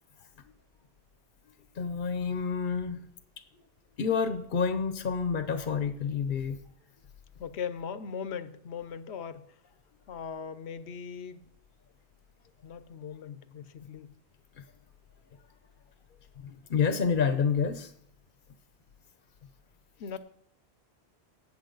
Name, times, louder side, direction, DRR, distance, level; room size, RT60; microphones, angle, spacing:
voice 1, 1.8-3.0 4.0-6.6 16.4-17.9, left 6 dB, 55° left, 0.9 m, -28 dB
voice 2, 7.4-9.5 10.1-11.5 12.6-14.1 20.0-20.2, left 7 dB, 80° left, 1.0 m, -39 dB
18.0 x 7.4 x 3.9 m
omnidirectional pair, 1.1 m